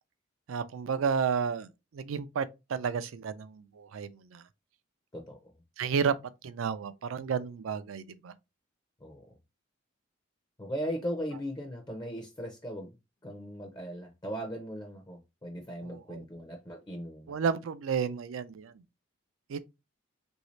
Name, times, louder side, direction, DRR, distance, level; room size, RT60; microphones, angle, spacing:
voice 1, 0.5-4.4 5.8-6.1 6.4-8.3 15.8-16.2 17.3-18.8 19.5-19.6, right 6 dB, 90° right, 0.4 m, -32 dB
voice 2, 9.0-9.3 10.6-13.0 13.2-17.4, equal, 20° left, 0.5 m, -38 dB
3.1 x 2.7 x 3.1 m
head